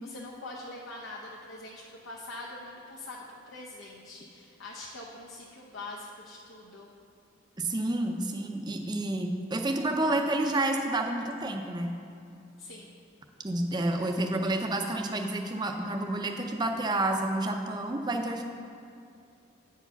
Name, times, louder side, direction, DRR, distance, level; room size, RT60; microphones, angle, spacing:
voice 1, 0.0-6.9 12.6-12.9, left 2 dB, 70° left, -4 dB, 0.8 m, -43 dB
voice 2, 7.6-12.0 13.4-18.4, right 1 dB, 20° right, 3 dB, 0.5 m, -29 dB
9.0 x 4.7 x 5.7 m, 2.5 s
head